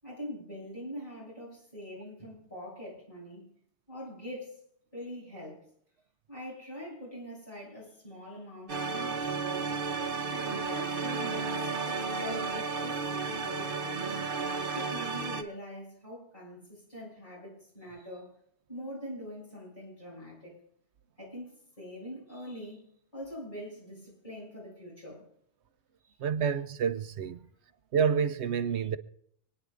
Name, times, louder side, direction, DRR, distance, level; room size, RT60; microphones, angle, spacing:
voice 1, 0.0-3.5 3.9-4.6 4.9-5.6 6.3-9.7 10.3-14.2 14.7-18.3 18.7-20.6 21.2-25.3 26.0-26.1, equal, 45° left, 6.9 m, -43 dB
sound 1, 8.7-15.4, right 4 dB, 55° right, 1.1 m, -33 dB
voice 2, 26.2-27.4 27.9-29.0, right 7 dB, 80° right, 1.0 m, -28 dB
27.5 x 10.0 x 2.5 m
omnidirectional pair, 1.1 m